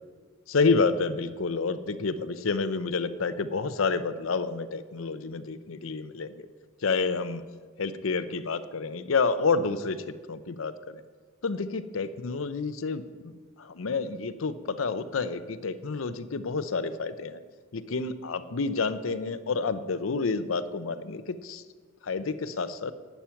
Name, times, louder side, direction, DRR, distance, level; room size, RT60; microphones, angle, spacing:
voice 1, 0.5-6.5 6.8-7.4 7.8-11.0 11.4-17.4 17.7-21.6 22.0-22.9, left 4 dB, 85° left, 12 dB, 0.6 m, -29 dB
11.5 x 9.1 x 5.8 m, 1.5 s
head